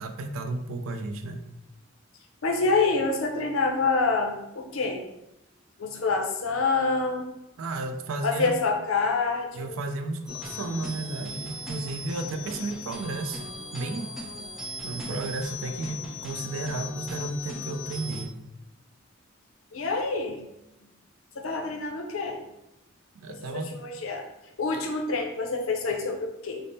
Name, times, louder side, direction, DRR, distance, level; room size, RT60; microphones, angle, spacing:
voice 1, 0.0-1.4 7.6-8.5 9.6-13.4 13.7-14.1 14.8-18.4 23.1-23.7, right 2 dB, 85° right, 7 dB, 0.4 m, -33 dB
voice 2, 2.4-5.0 5.8-7.3 8.2-9.8 19.7-20.4 21.4-22.4 23.3-24.3 24.6-26.6, left 3 dB, 90° left, 3 dB, 0.6 m, -27 dB
sound 1, 10.3-18.3, left 2 dB, ahead, 0.6 m, -38 dB
3.4 x 2.1 x 3.9 m, 0.86 s
head